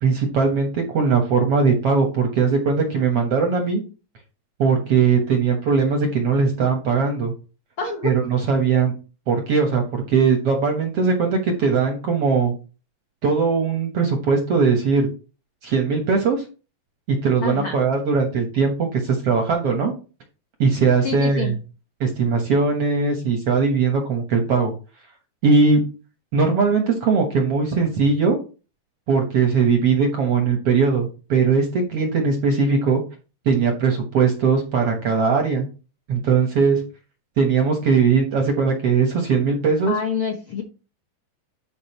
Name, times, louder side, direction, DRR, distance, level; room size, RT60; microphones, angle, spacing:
voice 1, 0.0-3.8 4.6-7.3 8.0-8.9 9.3-12.5 13.2-15.1 15.6-16.4 17.1-19.9 20.6-21.5 22.0-24.7 25.4-25.8 26.3-28.4 29.1-33.0 33.4-35.6 36.1-36.8 37.4-39.9, right 5 dB, 60° right, 3 dB, 1.7 m, -20 dB
voice 2, 7.8-8.1 17.4-17.8 21.0-21.5 39.9-40.6, left 5 dB, 60° left, 1 dB, 1.5 m, -26 dB
12.0 x 5.2 x 3.0 m, 0.33 s
omnidirectional pair, 4.1 m